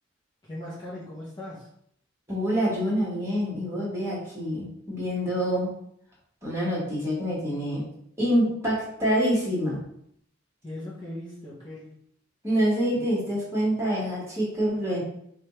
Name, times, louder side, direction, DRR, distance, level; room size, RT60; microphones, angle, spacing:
voice 1, 0.5-1.7 10.6-11.9, left 1 dB, 25° left, -7 dB, 0.8 m, -38 dB
voice 2, 2.3-5.7 6.4-7.8 8.2-9.8 12.4-15.0, equal, 15° right, -6 dB, 1.5 m, -26 dB
4.8 x 2.4 x 3.1 m, 0.70 s
head